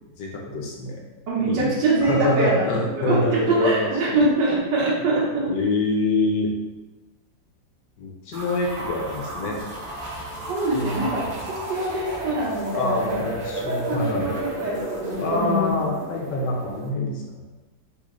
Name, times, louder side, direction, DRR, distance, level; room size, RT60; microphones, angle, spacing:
voice 1, 0.2-1.0 1.4-1.7 2.0-4.3 5.5-6.5 8.0-9.6 10.7-11.0 12.7-14.3 15.2-17.4, left 2 dB, 75° left, 0 dB, 1.4 m, -25 dB
voice 2, 1.3-2.7 3.0-5.5 10.5-13.1 13.9-15.7, right 2 dB, 70° right, -6 dB, 1.7 m, -24 dB
sound 1, 8.3-16.9, right 1 dB, 35° right, 0.9 m, -33 dB
4.0 x 3.1 x 3.7 m, 1.1 s
omnidirectional pair, 2.0 m